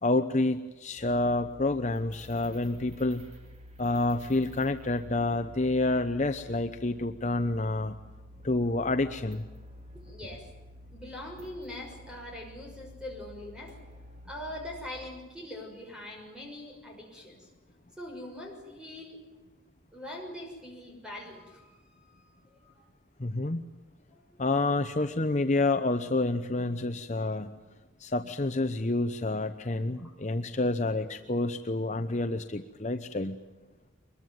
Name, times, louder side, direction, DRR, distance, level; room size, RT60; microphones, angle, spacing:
voice 1, 0.0-3.2 3.8-8.0 8.4-9.5 23.2-23.6 24.4-27.5 28.0-33.3, left 2 dB, 35° left, 7 dB, 0.8 m, -28 dB
sound 1, 1.0-14.9, left 1 dB, 30° right, 2.3 m, -50 dB
voice 2, 9.9-10.5 10.9-13.8 14.2-17.5 18.0-19.2 19.9-22.8 24.1-24.2, left 1 dB, 5° right, 1 dB, 6.4 m, -43 dB
24.0 x 21.5 x 9.4 m, 1.2 s
head